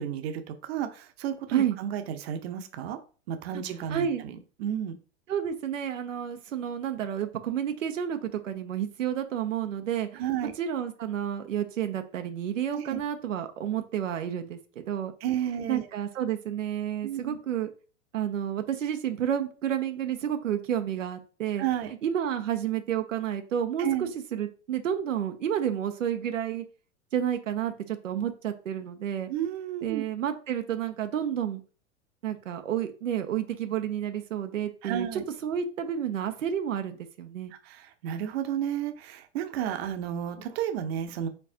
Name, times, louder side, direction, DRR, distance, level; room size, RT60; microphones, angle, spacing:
voice 1, 0.0-3.0 3.3-4.9 10.1-10.5 12.7-13.0 15.2-15.9 17.0-17.4 21.6-21.9 23.8-24.1 29.3-30.0 34.8-35.2 37.5-41.3, right 10 dB, 55° right, 8 dB, 0.9 m, -32 dB
voice 2, 3.9-4.2 5.3-10.2 10.6-14.6 14.9-15.1 15.7-17.7 18.1-21.6 22.0-26.6 27.1-29.3 29.8-31.6 32.2-37.5, right 9 dB, 85° right, 7 dB, 0.7 m, -30 dB
4.4 x 4.0 x 2.8 m, 0.37 s
hypercardioid pair, 110°, 37 cm